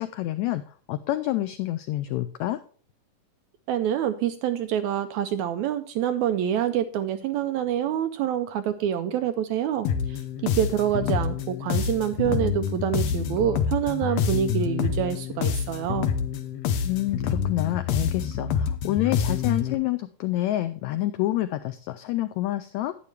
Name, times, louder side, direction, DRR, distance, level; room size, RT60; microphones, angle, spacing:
voice 1, 0.0-2.6 16.8-22.9, left 15 dB, 85° left, 11 dB, 1.6 m, -28 dB
voice 2, 3.7-10.2 10.4-16.1, right 10 dB, 80° right, 9 dB, 1.7 m, -26 dB
sound 1, 9.8-19.7, left 7 dB, 70° left, 1.7 m, -27 dB
11.5 x 9.4 x 3.3 m, 0.43 s
omnidirectional pair, 3.8 m